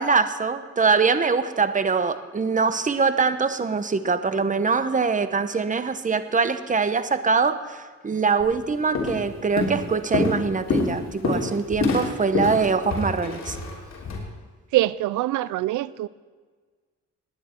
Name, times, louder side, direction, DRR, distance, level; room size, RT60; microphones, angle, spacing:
voice 1, 0.0-13.6, right 5 dB, 25° right, 0.9 m, -23 dB
Walk footsteps, 8.4-8.6 8.9-9.3 9.6-14.2, left 3 dB, 60° left, 3.4 m, -26 dB
voice 2, 14.7-16.1, right 16 dB, 80° right, 0.5 m, -24 dB
18.5 x 10.0 x 4.5 m
cardioid pair, 90°, 30 cm